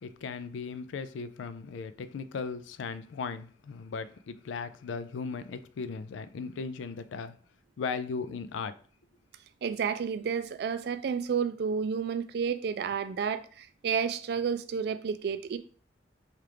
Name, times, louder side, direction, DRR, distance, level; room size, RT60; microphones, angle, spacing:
voice 1, 0.0-7.4 7.8-8.7, left 5 dB, 85° left, 0.3 m, -37 dB
voice 2, 9.6-15.6, right 6 dB, 60° right, 0.3 m, -31 dB
4.4 x 2.4 x 3.3 m
head